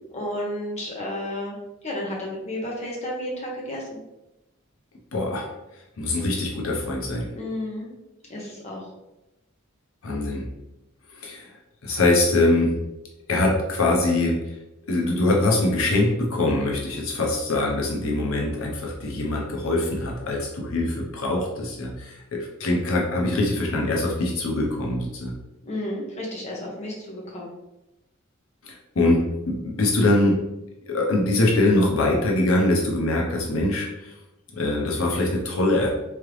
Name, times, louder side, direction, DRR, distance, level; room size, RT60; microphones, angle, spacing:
voice 1, 0.1-1.6 1.8-3.9 7.3-7.9 8.3-8.9 25.6-27.5, left 1 dB, 35° left, -3 dB, 1.0 m, -32 dB
voice 2, 5.1-5.5 6.0-7.3 10.0-10.5 11.1-11.5 11.8-12.8 13.3-14.4 14.9-25.3 28.6-30.4 30.9-34.1 34.5-35.9, left 2 dB, 80° left, -1 dB, 0.8 m, -23 dB
3.7 x 3.3 x 3.2 m, 0.94 s
head